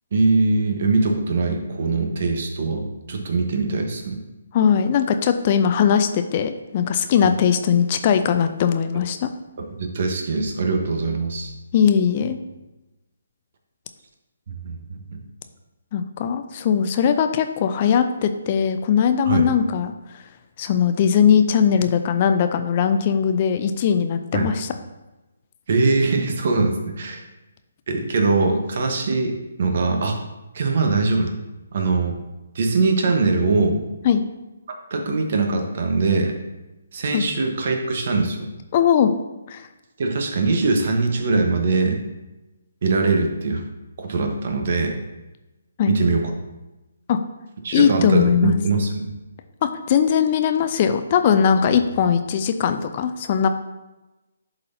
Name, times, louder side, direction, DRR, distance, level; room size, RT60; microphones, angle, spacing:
voice 1, 0.1-4.2 9.6-11.5 14.5-15.2 19.2-19.5 24.3-24.5 25.7-27.2 27.9-30.2 30.5-31.3 31.7-32.2 32.5-33.8 34.9-36.3 36.9-38.5 40.0-42.0 42.8-43.6 44.0-45.0 45.9-46.3 47.6-49.1, right 3 dB, 50° right, 4 dB, 1.1 m, -22 dB
voice 2, 4.5-9.3 11.7-12.4 15.9-20.2 20.6-24.7 34.0-34.2 37.1-37.2 38.7-39.1 39.5-39.7 45.8-46.0 47.1-47.2 47.7-48.6 49.6-53.5, left 7 dB, 35° left, 8 dB, 0.4 m, -20 dB
11.0 x 4.0 x 2.7 m, 1.0 s
figure-of-eight pair, 140°, 0 cm